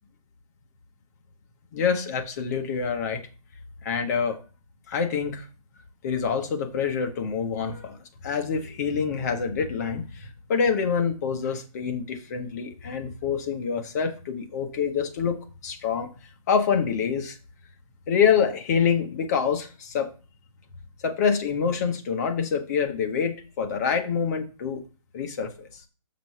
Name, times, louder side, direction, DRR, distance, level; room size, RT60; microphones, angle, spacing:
voice 1, 1.7-3.2 3.8-4.4 4.9-5.4 6.0-8.0 8.2-16.1 16.5-17.4 18.1-20.1 21.0-24.8 25.1-25.8, left 6 dB, 25° left, 6 dB, 1.0 m, -26 dB
6.1 x 5.9 x 5.6 m, 0.35 s
hypercardioid pair, 165°, 19 cm